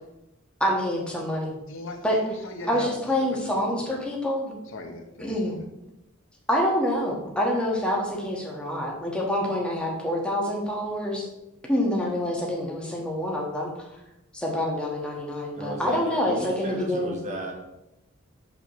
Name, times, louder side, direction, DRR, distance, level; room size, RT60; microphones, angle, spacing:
voice 1, 0.6-1.6 2.0-2.2 2.7-4.5 5.2-5.6 6.5-11.3 11.7-13.9 14.3-17.2, left 1 dB, 5° left, -3 dB, 1.3 m, -26 dB
voice 2, 1.7-2.9 3.2-3.9 4.7-5.6, left 2 dB, 60° left, 3 dB, 0.9 m, -38 dB
voice 3, 15.6-17.7, left 1 dB, 35° right, 0 dB, 1.3 m, -34 dB
6.6 x 5.9 x 3.1 m, 0.90 s
head